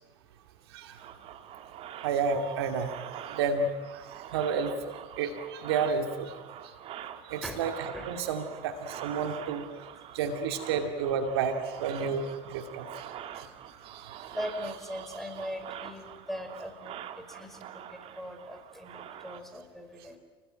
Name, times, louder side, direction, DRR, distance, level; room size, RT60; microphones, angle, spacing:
sound 1, 0.9-19.4, right 10 dB, 50° right, 2.1 m, -45 dB
voice 1, 2.0-2.9 3.3-4.0 4.3-6.3 6.6-6.7 7.3-9.7 10.1-13.1 13.4-13.5 13.8-14.4, right 5 dB, 75° right, 6 dB, 2.4 m, -31 dB
voice 2, 14.3-20.2, equal, ahead, 6 dB, 5.5 m, -40 dB
30.0 x 19.5 x 9.0 m, 1.3 s
hypercardioid pair, 75°, 13 cm